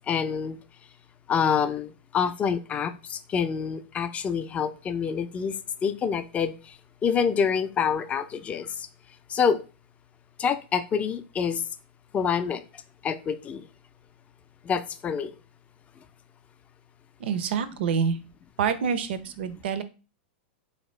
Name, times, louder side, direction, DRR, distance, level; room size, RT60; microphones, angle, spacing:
voice 1, 0.1-0.6 1.3-5.5 5.8-6.5 7.0-8.7 9.3-9.6 10.4-11.6 12.1-12.6 13.0-13.6 14.7-15.3, left 7 dB, 20° left, 10 dB, 0.4 m, -26 dB
voice 2, 17.2-18.2 18.6-19.8, right 6 dB, 70° right, 12 dB, 0.5 m, -27 dB
3.8 x 2.8 x 3.1 m, 0.32 s
hypercardioid pair, 125°, 6 cm